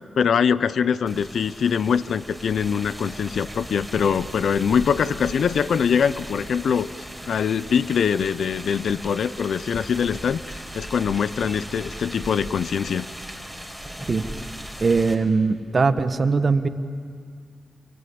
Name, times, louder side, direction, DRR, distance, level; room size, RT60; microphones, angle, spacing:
voice 1, 0.2-6.9 7.3-13.1, left 7 dB, 80° left, 16 dB, 0.7 m, -23 dB
sound 1, 1.1-15.1, equal, 5° left, 4.8 m, -38 dB
voice 2, 14.8-16.7, right 4 dB, 50° right, 9 dB, 1.5 m, -20 dB
28.0 x 23.0 x 8.7 m, 2.1 s
cardioid pair, 55°, 0 cm